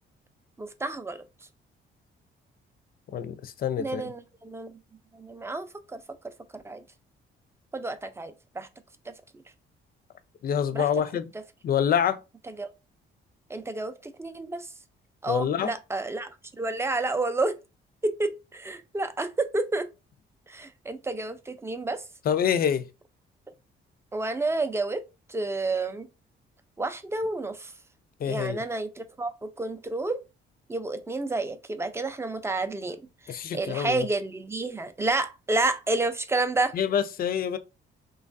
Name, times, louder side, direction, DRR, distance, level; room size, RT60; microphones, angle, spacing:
voice 1, 0.6-1.2 3.8-4.8 5.1-6.0 6.5-6.8 7.7-8.7 10.7-10.9 12.6-12.7 13.5-14.7 15.2-17.6 18.0-19.9 20.5-22.0 24.1-25.0 25.3-26.1 26.8-27.7 28.3-30.2 30.7-36.7, right 2 dB, 15° right, 0.4 m, -30 dB
voice 2, 3.1-4.1 10.4-11.3 11.6-12.2 15.3-15.7 22.2-22.9 28.2-28.6 33.3-34.1 36.7-37.6, left 8 dB, 50° left, 0.4 m, -26 dB
3.1 x 2.3 x 2.5 m
cardioid pair, 90°, 20 cm